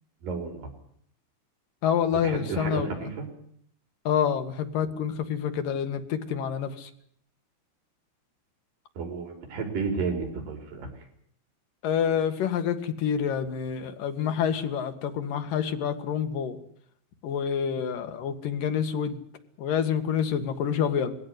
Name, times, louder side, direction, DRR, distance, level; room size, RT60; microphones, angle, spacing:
voice 1, 0.2-0.7 2.1-3.3 9.0-10.9, right 5 dB, 60° right, 3 dB, 6.8 m, -32 dB
voice 2, 1.8-3.1 4.1-6.9 11.8-16.6 17.2-19.2 19.6-21.2, left 8 dB, 65° left, 8 dB, 3.6 m, -27 dB
21.5 x 16.5 x 9.7 m, 0.65 s
omnidirectional pair, 4.3 m